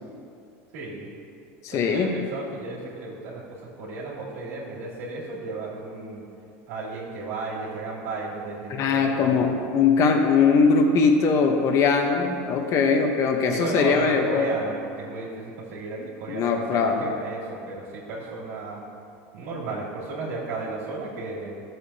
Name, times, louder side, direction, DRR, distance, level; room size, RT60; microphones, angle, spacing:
voice 1, 0.7-1.1 1.7-3.4 3.8-6.3 6.7-9.6 13.5-18.9 19.3-21.6, right 3 dB, 90° right, -7 dB, 2.4 m, -34 dB
voice 2, 1.6-2.2 8.7-14.6 16.3-17.1, left 5 dB, 40° left, 3 dB, 1.0 m, -21 dB
13.5 x 7.8 x 2.8 m, 2.5 s
supercardioid pair, 145°, 8 cm